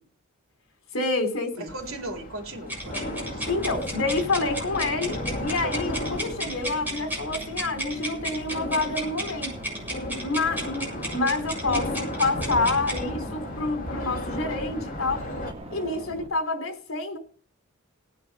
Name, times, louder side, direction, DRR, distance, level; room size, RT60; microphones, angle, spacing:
voice 1, 0.9-1.7 3.5-9.6 10.2-15.2 15.7-17.2, left 3 dB, 75° left, 3.2 m, -28 dB
voice 2, 1.6-3.6, right 2 dB, 75° right, 4.1 m, -38 dB
sound 1, 1.7-15.5, left 1 dB, 40° left, 2.5 m, -35 dB
sound 2, 2.7-13.0, right 1 dB, 10° right, 7.5 m, -34 dB
sound 3, 2.8-16.3, equal, 30° right, 2.0 m, -41 dB
18.5 x 9.8 x 5.3 m
head